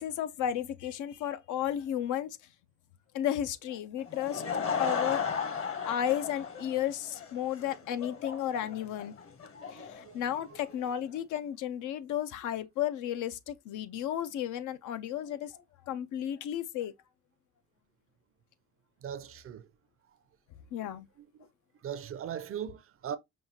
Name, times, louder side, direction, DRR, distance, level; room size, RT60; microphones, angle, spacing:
voice 1, 0.0-2.5 3.1-4.4 4.8-5.2 5.8-9.1 9.7-16.9 20.7-21.1, left 10 dB, 80° left, 0.5 m, -33 dB
Laughter / Crowd, 4.0-10.9, left 6 dB, 45° left, 0.9 m, -36 dB
voice 2, 19.0-19.7 21.4-21.5 21.8-23.2, right 9 dB, 50° right, 0.5 m, -39 dB
5.4 x 2.3 x 2.8 m
cardioid pair, 90°, 30 cm